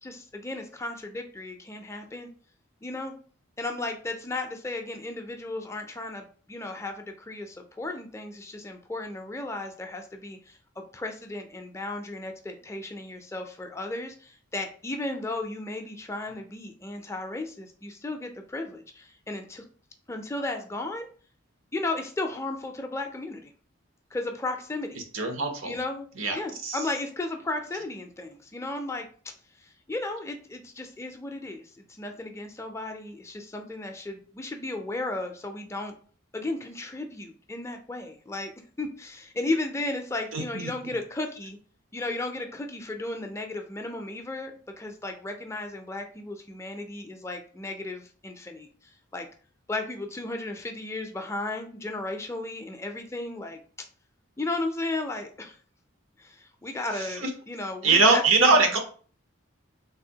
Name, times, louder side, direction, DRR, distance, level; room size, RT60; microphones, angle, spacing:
voice 1, 0.0-2.3 2.8-3.1 3.6-19.6 20.1-21.1 21.7-23.5 24.1-25.0 25.6-26.1 26.3-29.1 29.6-35.9 36.3-38.5 38.8-41.6 41.9-44.5 44.8-48.7 49.1-49.3 49.7-53.6 54.4-55.6 56.2-58.8, left 2 dB, 15° left, 4 dB, 0.3 m, -34 dB
voice 2, 25.1-25.7 26.2-26.8 40.3-40.6 56.9-57.3 57.8-58.8, right 3 dB, 90° right, 4 dB, 0.8 m, -22 dB
3.5 x 2.6 x 2.7 m, 0.42 s
head